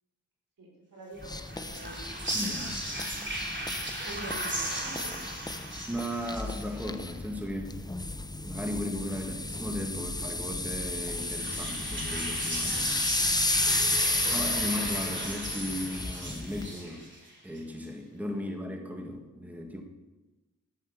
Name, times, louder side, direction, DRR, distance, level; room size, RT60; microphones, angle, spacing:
voice 1, 0.6-3.4 4.0-5.3 18.4-18.5, right 1 dB, 85° right, -2 dB, 5.0 m, -47 dB
sound 1, 1.2-16.7, left 2 dB, 10° left, 0.6 m, -33 dB
sound 2, 1.2-7.2 10.6-17.6, right 1 dB, 35° right, 3.0 m, -37 dB
voice 2, 2.3-2.7 5.9-7.8 8.4-12.8 14.3-17.0 17.4-19.8, left 1 dB, 5° right, 3 dB, 1.5 m, -36 dB
9.7 x 9.4 x 7.2 m, 1.1 s
cardioid pair, 55°, 33 cm